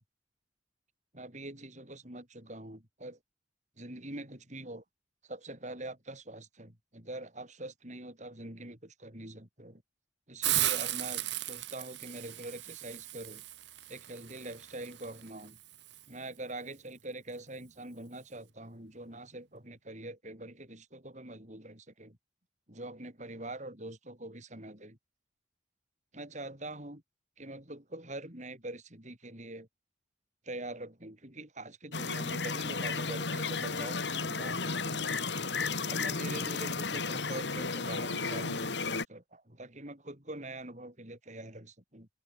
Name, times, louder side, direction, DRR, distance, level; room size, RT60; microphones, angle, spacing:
voice 1, 1.1-3.2 3.8-4.8 5.2-9.8 10.3-13.4 13.9-15.6 16.1-22.2 22.7-25.0 26.1-27.0 27.4-29.7 30.4-35.1 35.9-42.1, right 1 dB, 40° right, 6.5 m, -44 dB
Hiss, 10.4-16.0, right 14 dB, 75° right, 1.6 m, -36 dB
sound 1, 31.9-39.0, left 4 dB, 75° left, 2.6 m, -33 dB
head